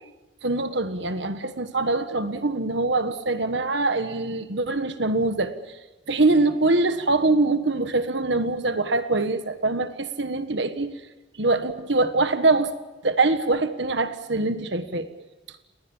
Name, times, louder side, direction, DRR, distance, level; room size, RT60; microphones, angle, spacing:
voice 1, 0.4-5.5 6.1-10.9 11.4-12.7 13.0-15.1, right 2 dB, 65° right, 10 dB, 1.5 m, -23 dB
29.5 x 21.0 x 7.3 m, 1.1 s
head